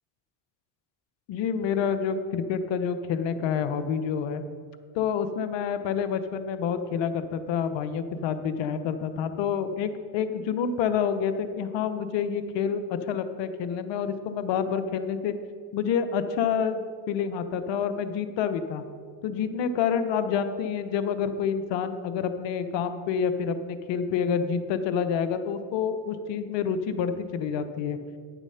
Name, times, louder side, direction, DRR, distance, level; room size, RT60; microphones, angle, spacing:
voice 1, 1.3-4.4 4.9-15.3 15.7-18.8 19.2-28.0, left 7 dB, 70° left, 10 dB, 0.9 m, -28 dB
9.2 x 7.1 x 5.7 m, 2.1 s
supercardioid pair, 75°, 46 cm